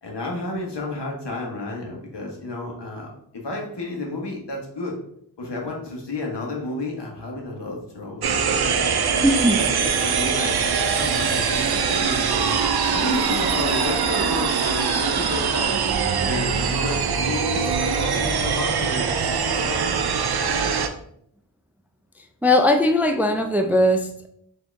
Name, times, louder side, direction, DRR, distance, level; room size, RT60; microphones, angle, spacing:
voice 1, 0.0-5.0 5.4-8.8 9.5-12.6 12.9-15.8 16.2-20.0 20.4-20.7, left 2 dB, 75° left, -1 dB, 1.3 m, -31 dB
sound 1, 8.2-20.9, right 6 dB, 65° right, 0.5 m, -23 dB
voice 2, 9.2-9.7 22.4-24.3, left 1 dB, 5° right, 6 dB, 0.3 m, -19 dB
4.4 x 2.8 x 3.4 m, 0.70 s
wide cardioid pair, 65°, 41 cm